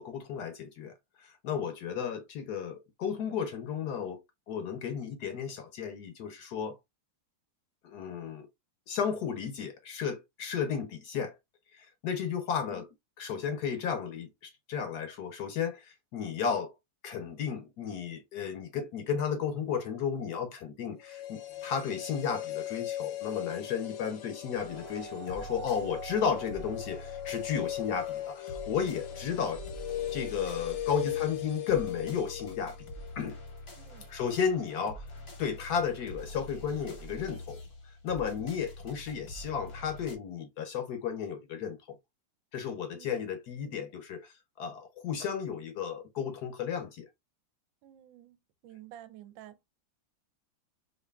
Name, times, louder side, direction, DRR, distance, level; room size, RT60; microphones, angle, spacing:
voice 1, 0.0-4.2 4.5-6.8 7.8-8.5 8.9-11.4 11.7-12.9 13.2-16.7 17.0-29.6 30.1-32.8 33.2-33.4 34.1-35.0 35.4-37.6 38.0-42.0 42.5-47.1, left 7 dB, 70° left, 1.0 m, -33 dB
sound 1, 21.0-33.1 33.4-33.5, left 10 dB, 85° left, 1.5 m, -39 dB
sound 2, 24.5-40.2, left 1 dB, 50° left, 0.8 m, -46 dB
voice 2, 31.0-31.4 33.7-34.1 38.3-38.6 42.9-43.3 47.8-48.4 48.6-49.6, right 12 dB, 80° right, 1.3 m, -52 dB
4.7 x 2.5 x 2.2 m
omnidirectional pair, 2.1 m